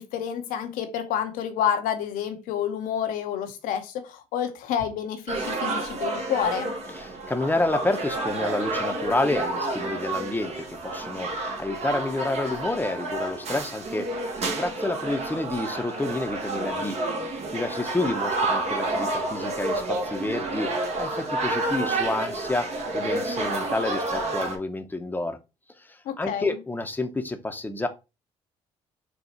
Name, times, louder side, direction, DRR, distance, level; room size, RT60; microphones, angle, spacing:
voice 1, 0.0-6.7 26.1-26.5, left 9 dB, 75° left, 0.8 m, -29 dB
sound 1, 5.3-24.6, right 2 dB, 50° right, 1.3 m, -29 dB
voice 2, 7.0-14.1 14.6-17.0 17.5-25.4 25.8-27.9, left 2 dB, 15° left, 0.8 m, -29 dB
4.4 x 2.3 x 4.3 m
hypercardioid pair, 60°, 14 cm